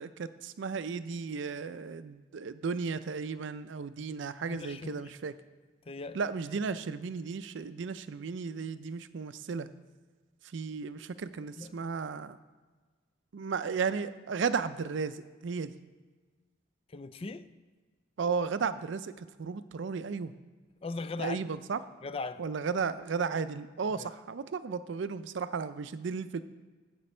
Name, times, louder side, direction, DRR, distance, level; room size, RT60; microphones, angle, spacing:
voice 1, 0.0-5.3 6.1-9.7 10.5-12.4 13.3-15.7 18.2-20.3 21.2-21.8 22.4-26.4, right 5 dB, 65° right, 0.4 m, -34 dB
voice 2, 4.5-5.1 5.9-6.2 11.6-11.8 16.9-17.5 20.8-21.4 22.0-22.4 24.0-24.1, left 3 dB, 30° left, 0.3 m, -39 dB
15.0 x 5.2 x 4.3 m
head